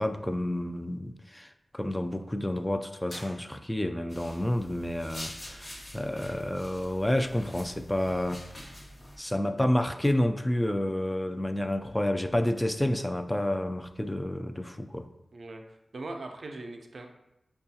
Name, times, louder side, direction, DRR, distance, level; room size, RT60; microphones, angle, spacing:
voice 1, 0.0-5.7 5.9-8.4 9.2-15.1, left 1 dB, 15° left, 8 dB, 0.3 m, -29 dB
sound 1, 3.0-4.1, left 1 dB, 85° left, 0.8 m, -49 dB
sound 2, 4.1-9.2, left 1 dB, 35° left, 1.0 m, -45 dB
voice 2, 15.3-17.1, right 2 dB, 70° right, 4 dB, 0.4 m, -40 dB
5.4 x 2.3 x 2.7 m, 0.91 s
cardioid pair, 40°, 0 cm